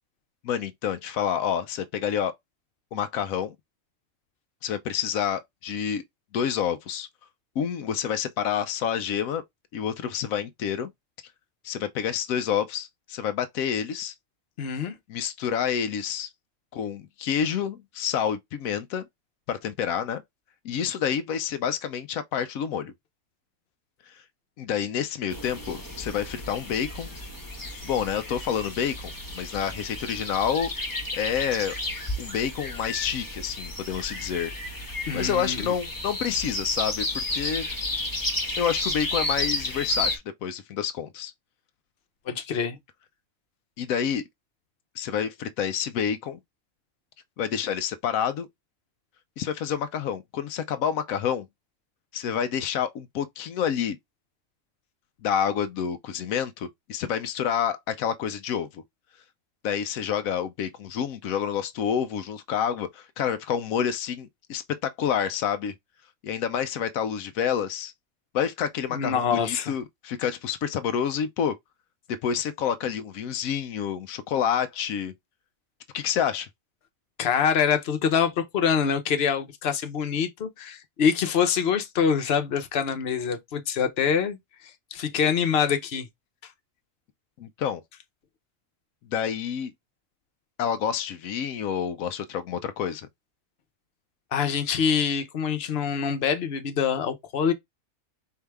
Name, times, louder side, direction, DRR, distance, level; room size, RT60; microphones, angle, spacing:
voice 1, 0.4-2.3 2.9-3.5 4.6-6.0 6.3-7.1 7.6-9.4 9.7-10.9 11.6-14.1 15.1-16.3 16.7-19.1 19.5-20.2 20.6-22.9 24.1-24.2 24.6-27.1 27.8-30.7 31.1-31.8 32.2-34.9 35.1-37.7 38.6-41.3 43.8-44.2 45.0-46.4 47.4-48.5 49.4-51.5 52.1-54.0 55.2-58.8 59.6-65.7 66.2-67.9 68.3-71.6 72.1-75.1 75.9-76.5 87.4-87.8 89.1-89.7 90.6-93.1, left 8 dB, 85° left, 1.1 m, -28 dB
voice 2, 14.6-14.9 35.1-35.7 42.3-42.8 68.9-69.8 77.2-84.4 84.9-86.1 94.3-97.5, left 7 dB, 50° left, 1.0 m, -25 dB
sound 1, 25.3-40.2, left 1 dB, 15° left, 1.1 m, -32 dB
4.7 x 2.7 x 3.4 m
omnidirectional pair, 1.4 m